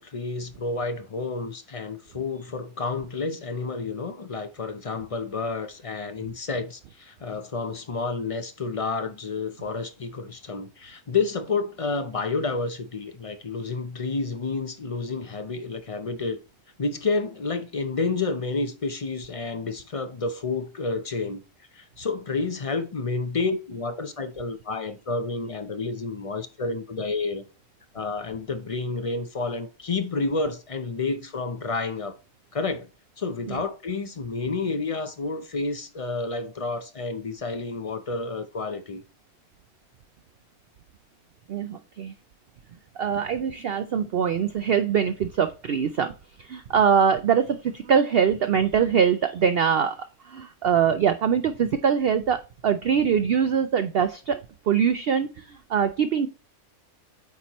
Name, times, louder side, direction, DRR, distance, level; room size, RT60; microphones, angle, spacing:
voice 1, 0.0-16.4 16.8-21.4 21.7-27.4 27.9-32.2 32.5-32.9 33.2-39.0, left 3 dB, 45° left, 0.4 m, -30 dB
voice 2, 41.5-42.1 43.0-46.1 46.4-54.4 54.7-56.3, right 7 dB, 85° right, 0.5 m, -23 dB
8.4 x 4.4 x 3.0 m
omnidirectional pair, 1.6 m